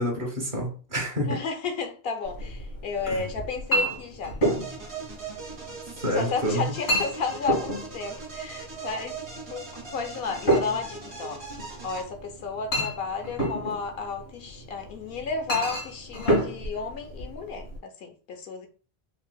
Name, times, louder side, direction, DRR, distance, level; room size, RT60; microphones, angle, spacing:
voice 1, 0.0-1.4 3.1-3.2 6.0-6.7, equal, 55° right, 1.2 m, -28 dB
voice 2, 1.2-4.4 6.1-11.4 11.8-18.7, left 5 dB, 70° left, 0.8 m, -33 dB
Chink clink, 2.2-17.8, right 1 dB, 85° left, 1.8 m, -31 dB
sound 1, 4.4-12.0, right 4 dB, 85° right, 1.5 m, -40 dB
4.5 x 2.4 x 2.2 m
omnidirectional pair, 1.1 m